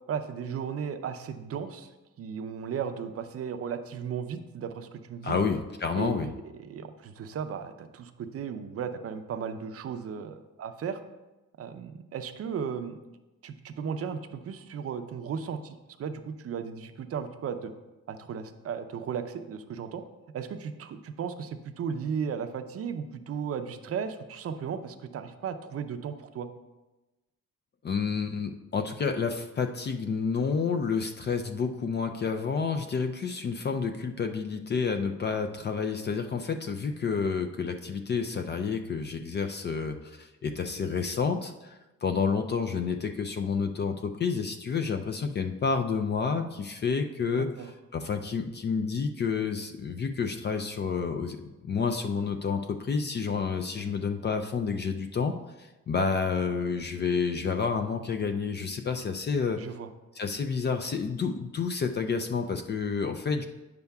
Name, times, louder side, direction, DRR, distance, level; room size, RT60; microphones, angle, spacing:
voice 1, 0.1-1.9 2.2-5.4 6.0-11.0 11.6-13.0 13.4-17.7 18.1-20.0 20.3-26.5 47.4-47.7 59.6-59.9, right 7 dB, 50° right, 9 dB, 0.6 m, -35 dB
voice 2, 5.2-6.3 27.8-51.4 51.6-59.6 60.2-63.4, left 5 dB, 35° left, 6 dB, 0.5 m, -29 dB
9.4 x 6.8 x 2.3 m, 1.1 s
cardioid pair, 90°, 30 cm